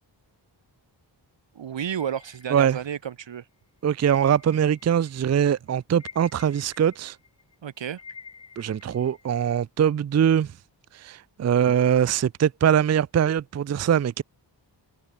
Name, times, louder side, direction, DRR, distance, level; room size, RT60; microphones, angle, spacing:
voice 1, 1.5-3.5 7.6-8.0, right 9 dB, 85° right, 2.3 m, -32 dB
sound 1, 2.0-3.3 4.0-5.3 5.6-9.3, left 5 dB, 35° left, 2.5 m, -48 dB
voice 2, 3.8-7.2 8.6-10.5 10.9-14.2, right 9 dB, 40° right, 0.5 m, -22 dB
wide cardioid pair, 155°, 43 cm